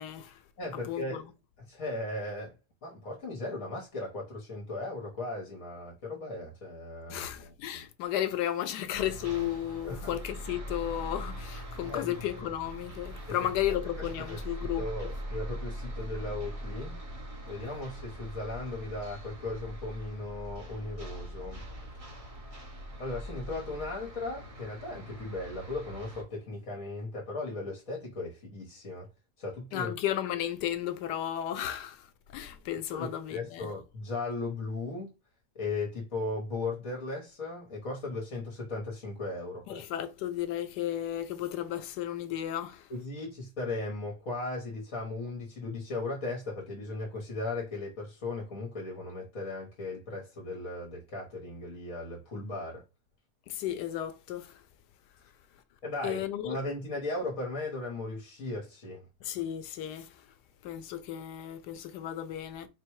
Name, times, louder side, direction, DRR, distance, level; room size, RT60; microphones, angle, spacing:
voice 1, 0.0-0.4 0.7-1.3 7.1-15.1 29.7-33.7 39.7-42.9 53.5-54.6 56.0-56.6 59.2-60.3 60.6-62.7, left 11 dB, 85° left, 1.2 m, -34 dB
voice 2, 0.6-1.3 1.7-2.5 2.8-7.8 9.9-10.2 11.8-12.1 13.3-13.4 14.0-14.4 14.8-17.0 17.5-21.6 23.0-29.1 29.4-29.9 32.9-35.1 35.5-39.8 42.9-52.8 55.8-59.0, left 2 dB, 60° left, 1.4 m, -37 dB
sound 1, 8.9-26.2, equal, 25° right, 0.9 m, -41 dB
4.2 x 2.2 x 4.5 m
omnidirectional pair, 1.7 m